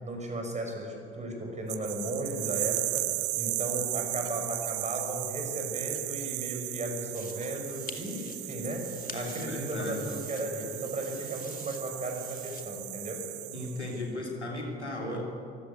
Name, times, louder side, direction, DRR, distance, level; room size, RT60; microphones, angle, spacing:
voice 1, 0.0-8.8 9.1-13.3, right 1 dB, 20° right, 2 dB, 5.8 m, -35 dB
sound 1, 1.7-14.0, right 19 dB, 45° right, 0.6 m, -36 dB
sound 2, 7.1-12.6, left 5 dB, 25° left, 2.3 m, -48 dB
voice 2, 9.1-10.1 13.5-15.2, left 1 dB, 90° left, -1 dB, 3.2 m, -35 dB
24.0 x 15.5 x 8.3 m, 2.7 s
figure-of-eight pair, 60°, 33 cm